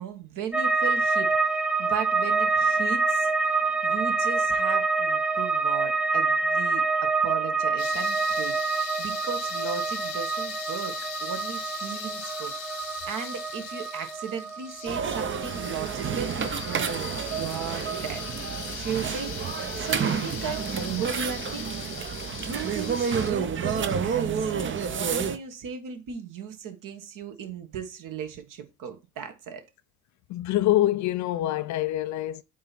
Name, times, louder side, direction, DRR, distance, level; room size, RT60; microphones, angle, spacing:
voice 1, 0.0-10.9 11.2-12.5 13.0-16.4 16.6-18.2 18.5-19.3 19.7-21.7 22.5-29.6, right 6 dB, 55° right, 1.6 m, -36 dB
sound 1, 0.5-17.6 17.9-18.6, right 4 dB, 5° right, 0.6 m, -27 dB
sound 2, 7.8-23.3, left 7 dB, 85° left, 1.6 m, -40 dB
sound 3, 14.9-25.4, right 7 dB, 30° right, 0.8 m, -30 dB
voice 2, 30.3-32.4, left 14 dB, 50° left, 0.5 m, -25 dB
8.3 x 2.9 x 4.2 m
hypercardioid pair, 70°, 38 cm